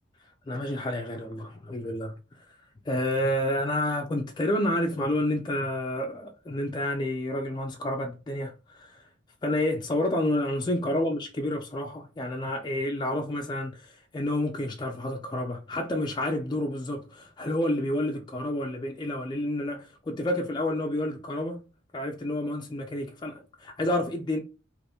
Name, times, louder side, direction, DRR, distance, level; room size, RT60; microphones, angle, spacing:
voice 1, 0.5-2.6 2.9-9.1 9.4-21.6 21.9-24.4, left 1 dB, 25° left, 0.4 m, -29 dB
2.7 x 2.5 x 3.3 m
head